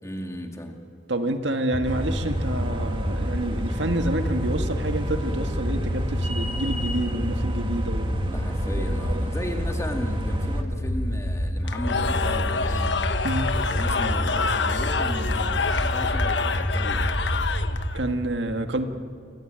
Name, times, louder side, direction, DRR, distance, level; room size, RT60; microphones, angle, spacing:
voice 1, 0.0-0.8 8.3-12.9 13.7-17.1, equal, 15° left, 3 dB, 2.5 m, -35 dB
voice 2, 1.1-8.5 9.1-9.3 13.2-13.5 17.9-18.8, right 1 dB, 80° right, 6 dB, 1.8 m, -28 dB
sound 1, 1.7-17.9, equal, 35° left, 5.3 m, -28 dB
sound 2, 1.8-10.6, right 1 dB, 30° right, 2.0 m, -35 dB
Cheering / Crowd, 11.6-18.0, left 5 dB, 75° left, 1.3 m, -27 dB
28.5 x 23.5 x 9.0 m, 2.3 s
head